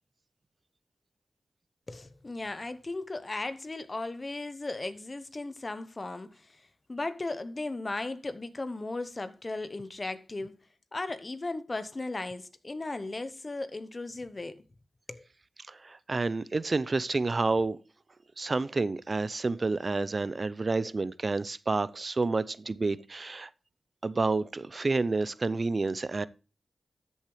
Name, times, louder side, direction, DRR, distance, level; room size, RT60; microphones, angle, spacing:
voice 1, 1.9-10.6 10.9-14.6 15.1-15.3, left 2 dB, 40° left, 1.0 m, -36 dB
voice 2, 15.7-17.8 18.4-23.5 24.0-26.3, right 3 dB, 50° right, 0.6 m, -29 dB
13.0 x 7.2 x 3.3 m
cardioid pair, 50°, 0 cm